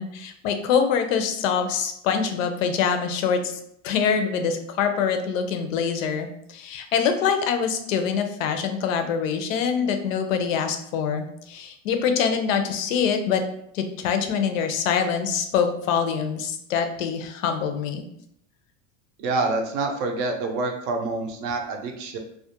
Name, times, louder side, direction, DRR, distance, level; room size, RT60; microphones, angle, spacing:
voice 1, 0.0-13.4 13.7-18.0, left 7 dB, 85° left, 7 dB, 0.6 m, -25 dB
voice 2, 19.2-22.2, right 3 dB, 45° right, 3 dB, 0.4 m, -27 dB
2.3 x 2.1 x 2.8 m, 0.73 s
supercardioid pair, 155°, 38 cm